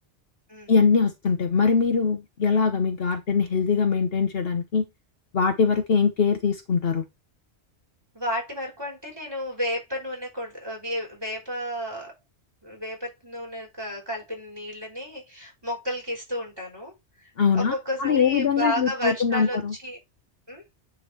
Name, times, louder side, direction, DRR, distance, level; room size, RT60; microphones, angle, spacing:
voice 1, 0.7-4.8 5.3-7.0 17.4-17.7 18.0-19.7, left 5 dB, 60° left, 1.1 m, -22 dB
voice 2, 8.1-12.2 12.6-20.0 20.5-20.6, equal, 20° right, 5.1 m, -32 dB
10.0 x 3.8 x 4.4 m
omnidirectional pair, 1.2 m